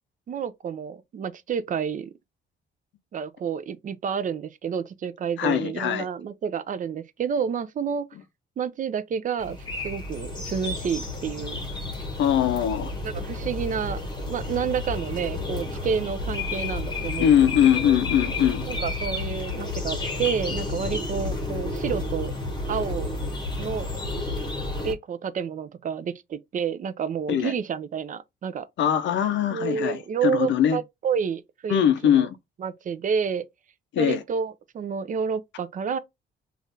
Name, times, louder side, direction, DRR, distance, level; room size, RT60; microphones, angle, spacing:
voice 1, 0.3-2.1 3.1-8.1 8.6-9.6 9.8-11.6 13.0-17.4 17.7-18.0 18.7-22.4 22.7-23.1 23.6-23.9 24.8-28.7 29.5-32.3 32.6-33.4 34.0-36.0, right 7 dB, 40° right, 0.4 m, -29 dB
voice 2, 5.4-6.1 12.2-12.9 17.2-18.6 27.3-27.5 28.8-30.8 31.7-32.4 33.9-34.2, left 10 dB, 70° left, 0.5 m, -21 dB
sound 1, 9.4-24.9, left 2 dB, 20° left, 1.0 m, -31 dB
3.3 x 2.4 x 2.6 m
cardioid pair, 90°, 20 cm